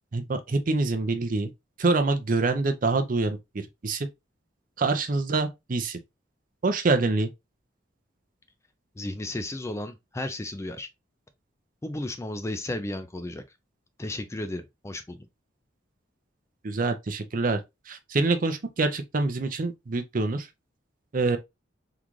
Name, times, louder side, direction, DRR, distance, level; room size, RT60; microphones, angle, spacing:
voice 1, 0.1-1.5 1.8-4.1 4.8-6.0 6.6-7.3 16.6-17.6 17.9-20.5 21.1-21.4, right 3 dB, 45° right, 0.5 m, -26 dB
voice 2, 9.0-10.9 11.8-13.4 14.0-15.3, left 1 dB, 15° left, 0.3 m, -34 dB
3.7 x 2.4 x 3.0 m
head